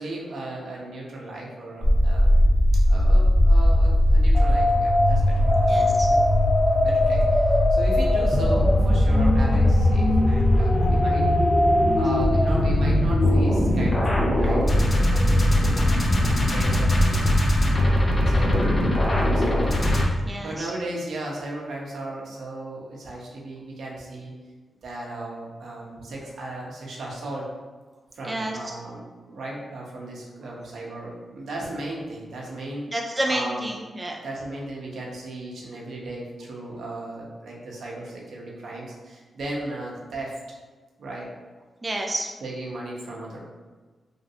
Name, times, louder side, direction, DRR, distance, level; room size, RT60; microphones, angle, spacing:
voice 1, 0.0-2.5 2.8-6.2 6.8-11.3 11.9-17.2 17.7-18.7 19.1-19.7 20.3-24.3 24.8-27.5 28.1-32.8 33.3-33.7 34.2-40.4 41.0-41.3 42.4-43.5, right 1 dB, 80° right, -3 dB, 0.7 m, -36 dB
sound 1, 1.8-20.0, left 1 dB, 30° left, 0.6 m, -19 dB
voice 2, 5.7-6.1 20.2-20.7 28.2-28.6 32.9-34.2 41.8-42.3, right 1 dB, 20° right, 0 dB, 0.3 m, -29 dB
3.1 x 2.5 x 2.6 m, 1.4 s
wide cardioid pair, 105°, 0 cm